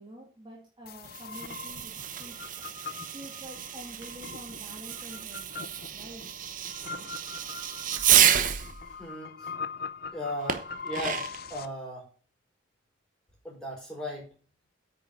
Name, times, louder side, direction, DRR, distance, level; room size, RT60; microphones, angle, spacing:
voice 1, 0.0-1.9 2.2-2.4 3.1-6.3, right 1 dB, 25° right, -2 dB, 2.0 m, -47 dB
sound 1, 0.9-11.7, left 5 dB, 50° left, 0.6 m, -41 dB
Fireworks, 1.0-8.7 10.5-11.5, right 10 dB, 40° right, 0.9 m, -29 dB
Door, 3.5-9.1, right 2 dB, 70° right, 1.2 m, -46 dB
voice 2, 8.9-9.5 10.1-12.0 13.4-14.3, equal, 5° left, -3 dB, 4.8 m, -37 dB
8.9 x 6.5 x 5.2 m, 0.40 s
head